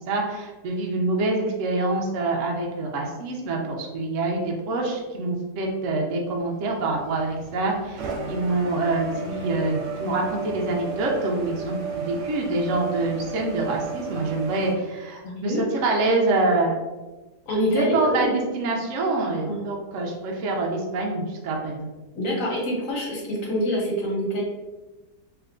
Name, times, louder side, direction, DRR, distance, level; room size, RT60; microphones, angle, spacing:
voice 1, 0.1-16.7 17.7-21.9, right 2 dB, 60° right, -1 dB, 0.8 m, -26 dB
sound 1, 6.5-14.8, right 5 dB, 80° right, 1.3 m, -34 dB
voice 2, 15.2-15.6 17.5-18.3 19.5-19.6 22.1-24.4, equal, 55° left, -3 dB, 1.3 m, -26 dB
3.4 x 2.9 x 3.6 m, 1.2 s
omnidirectional pair, 1.8 m